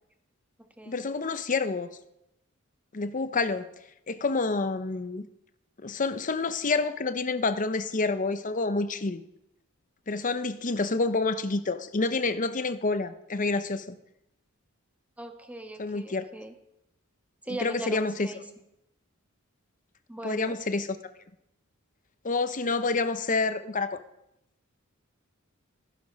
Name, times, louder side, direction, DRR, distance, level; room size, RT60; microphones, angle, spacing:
voice 1, 0.9-1.9 2.9-3.7 4.1-5.3 5.8-9.2 10.1-14.0 15.8-16.2 17.5-18.3 20.2-21.0 22.2-24.0, left 3 dB, 40° left, 11 dB, 0.8 m, -28 dB
voice 2, 15.2-16.5 17.4-18.4 20.1-20.6, right 1 dB, 5° right, 5 dB, 1.3 m, -40 dB
13.5 x 11.0 x 5.3 m, 0.86 s
head